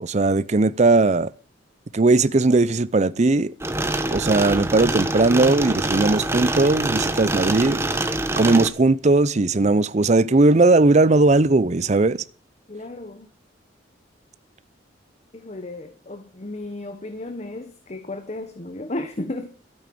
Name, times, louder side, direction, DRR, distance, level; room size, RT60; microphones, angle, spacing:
voice 1, 0.0-1.3 1.9-3.5 4.1-7.8 8.4-12.2, right 3 dB, 40° right, 0.6 m, -18 dB
sound 1, 3.6-8.7, right 2 dB, 15° right, 1.1 m, -25 dB
voice 2, 12.7-13.3 15.3-19.5, left 2 dB, 35° left, 1.1 m, -34 dB
13.0 x 8.8 x 7.7 m
head